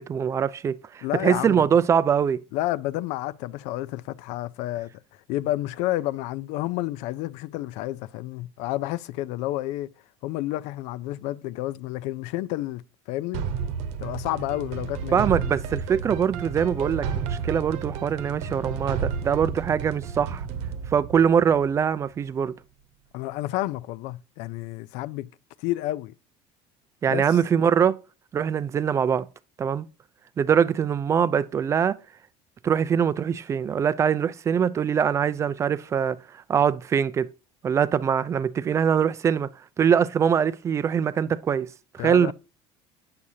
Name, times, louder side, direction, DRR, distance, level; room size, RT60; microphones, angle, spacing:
voice 1, 0.0-2.4 15.1-20.4 20.9-22.5 27.0-28.0 28.3-29.3 29.6-29.8 30.4-32.0 32.6-36.2 36.5-37.3 37.6-39.5 39.8-42.3, right 7 dB, 25° right, 0.4 m, -23 dB
voice 2, 1.0-1.6 2.5-4.9 5.3-9.9 10.2-13.5 14.0-15.3 23.1-25.3 25.6-26.1 27.1-27.4 42.0-42.3, left 16 dB, 75° left, 0.4 m, -30 dB
sound 1, 13.3-22.2, right 6 dB, 70° right, 1.0 m, -32 dB
8.6 x 6.3 x 2.7 m
cardioid pair, 145°, 12 cm